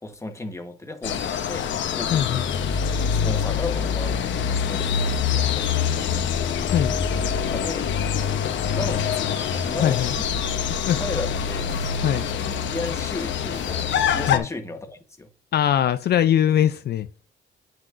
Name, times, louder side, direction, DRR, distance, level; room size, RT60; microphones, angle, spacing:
voice 1, 0.0-2.5 2.8-6.3 7.5-7.9 8.7-9.3 9.7-10.2 10.9-11.8 12.3-15.3, left 2 dB, 15° left, 1.2 m, -35 dB
sound 1, 1.0-14.4, left 7 dB, 70° left, 0.9 m, -25 dB
voice 2, 2.1-2.5 6.6-7.0 9.8-10.1 10.7-11.0 12.0-12.3 14.3-14.4 15.5-17.1, left 10 dB, 55° left, 0.5 m, -21 dB
sound 2, 9.2-14.0, equal, 65° right, 3.0 m, -44 dB
8.5 x 6.1 x 2.6 m
cardioid pair, 90°, 20 cm